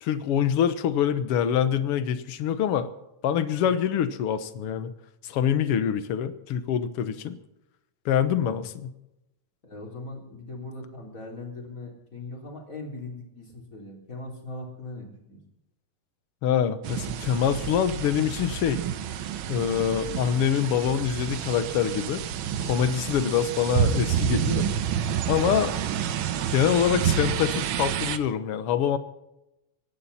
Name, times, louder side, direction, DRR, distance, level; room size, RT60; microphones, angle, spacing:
voice 1, 0.0-2.9 3.2-4.9 5.2-7.4 8.1-8.9 16.4-18.8 19.5-22.2 22.6-24.7 25.3-25.7 26.5-29.0, left 9 dB, 60° left, 11 dB, 1.7 m, -25 dB
voice 2, 9.6-15.4 25.4-25.8, left 2 dB, 25° left, 0 dB, 4.1 m, -40 dB
sound 1, 16.8-28.2, right 8 dB, 80° right, 1.1 m, -29 dB
25.0 x 11.5 x 4.2 m, 0.90 s
omnidirectional pair, 3.5 m